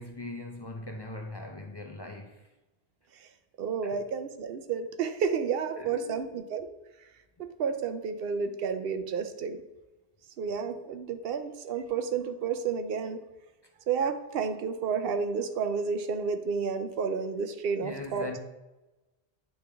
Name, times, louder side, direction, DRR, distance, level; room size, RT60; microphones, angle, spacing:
voice 1, 0.0-2.5 3.8-4.0 5.7-6.3 17.8-18.4, left 2 dB, 40° left, 0.4 m, -40 dB
voice 2, 3.6-6.7 7.4-9.6 10.4-13.2 13.9-18.3, right 6 dB, 65° right, 0.7 m, -31 dB
8.9 x 3.3 x 3.5 m
omnidirectional pair, 1.1 m